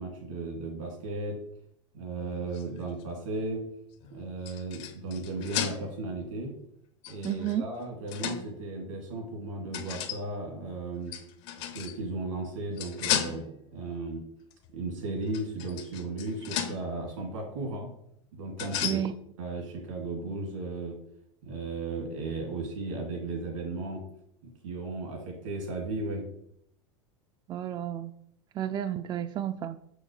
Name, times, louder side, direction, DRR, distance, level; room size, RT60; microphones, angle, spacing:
voice 1, 0.0-1.4 1.9-3.6 4.1-6.5 7.1-11.1 11.7-14.2 14.7-17.9 18.3-19.0 19.4-21.0 21.4-24.0 24.4-26.3, right 2 dB, 80° right, 2.4 m, -35 dB
sound 1, 2.2-3.5 4.0-6.1 7.0-8.6 9.7-10.3 11.1-12.0 12.8-13.7 14.5-14.7 15.3-17.0 18.6-19.1, left 10 dB, 65° left, 0.8 m, -35 dB
voice 2, 7.2-7.6 18.8-19.2 27.5-28.1 28.5-29.8, right 10 dB, 25° right, 0.3 m, -31 dB
6.3 x 6.1 x 3.2 m
hypercardioid pair, 95°, 16 cm